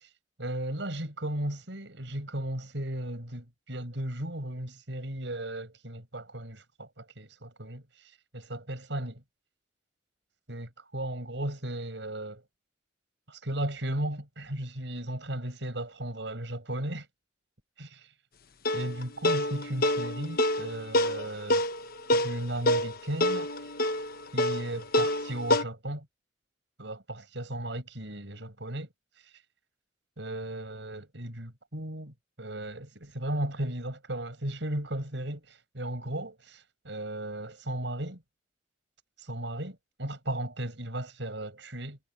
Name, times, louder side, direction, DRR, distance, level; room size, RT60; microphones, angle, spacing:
voice 1, 0.4-7.8 8.3-9.2 10.5-12.4 13.3-17.1 17.8-18.0 18.7-21.6 22.1-23.5 24.3-26.1 26.8-28.9 30.2-38.2 39.2-42.0, right 1 dB, 80° right, 6.2 m, -35 dB
sound 1, 18.6-25.6, left 1 dB, 55° left, 1.2 m, -27 dB
head